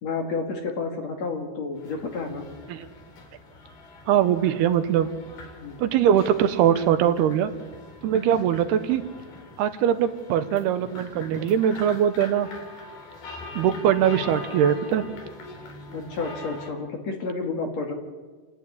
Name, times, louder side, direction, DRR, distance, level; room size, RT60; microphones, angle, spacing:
voice 1, 0.0-2.4 5.6-5.8 8.3-8.4 15.9-17.9, left 4 dB, 50° left, 3 dB, 2.7 m, -30 dB
sound 1, 1.7-16.7, left 3 dB, 65° left, 5.2 m, -43 dB
voice 2, 4.1-5.1 5.8-7.5 8.0-9.0 9.6-12.5 13.6-15.0, right 9 dB, 80° right, 10 dB, 2.9 m, -21 dB
28.5 x 11.5 x 9.8 m, 1.4 s
omnidirectional pair, 4.7 m